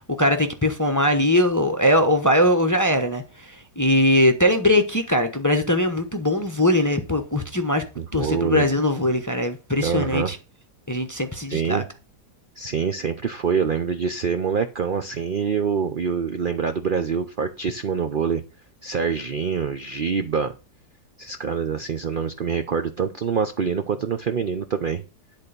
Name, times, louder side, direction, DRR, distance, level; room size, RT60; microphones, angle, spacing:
voice 1, 0.1-7.8 8.1-10.4 10.9-11.8, left 1 dB, 15° left, 0.6 m, -21 dB
voice 2, 8.0-8.7 9.8-10.3 11.1-11.2 11.5-11.8 12.6-18.4 18.8-20.5 21.2-25.0, right 6 dB, 75° right, 0.4 m, -25 dB
10.5 x 4.1 x 6.7 m
omnidirectional pair, 1.8 m